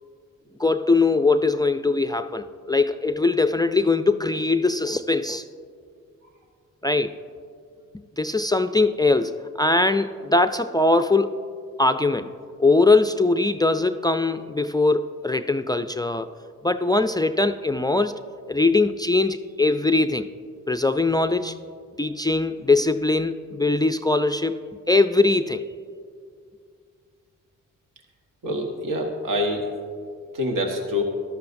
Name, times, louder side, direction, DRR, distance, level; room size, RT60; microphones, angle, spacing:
voice 1, 0.6-5.5 6.8-7.1 8.2-11.4 11.8-16.3 16.6-18.2 18.5-20.3 20.7-21.5 22.0-24.6 24.9-25.6, left 3 dB, 10° left, 9 dB, 0.3 m, -21 dB
voice 2, 28.4-29.7 30.3-31.0, left 1 dB, 65° right, 2 dB, 1.4 m, -25 dB
14.0 x 12.0 x 2.6 m, 2.2 s
supercardioid pair, 50°, 34 cm